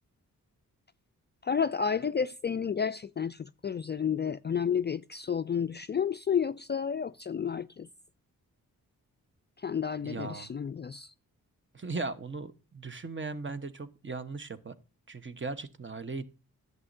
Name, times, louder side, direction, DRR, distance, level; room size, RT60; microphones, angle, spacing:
voice 1, 1.4-7.9 9.6-11.1, left 7 dB, 30° left, 0.4 m, -31 dB
voice 2, 10.0-10.5 11.7-14.7 15.1-16.3, right 3 dB, 35° right, 1.2 m, -38 dB
11.0 x 7.8 x 2.6 m
cardioid pair, 45°, 36 cm